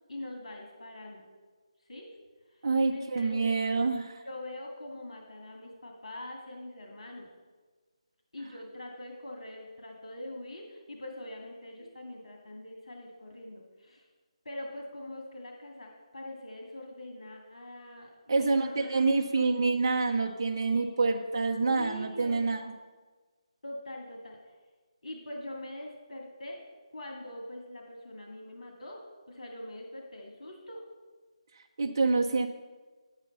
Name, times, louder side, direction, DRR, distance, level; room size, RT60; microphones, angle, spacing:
voice 1, 0.1-1.3 1.9-2.1 2.5-2.6 2.9-3.4 4.2-7.3 8.3-14.1 14.4-18.1 18.4-19.0 19.3-19.7 21.8-22.4 23.6-24.5 25.0-26.6 26.9-30.8, left 1 dB, 70° left, 0 dB, 2.2 m, -43 dB
voice 2, 2.6-4.2 18.3-22.7 31.8-32.5, right 3 dB, 35° right, 1 dB, 0.7 m, -27 dB
9.7 x 8.2 x 5.5 m, 1.4 s
figure-of-eight pair, 175°, 3 cm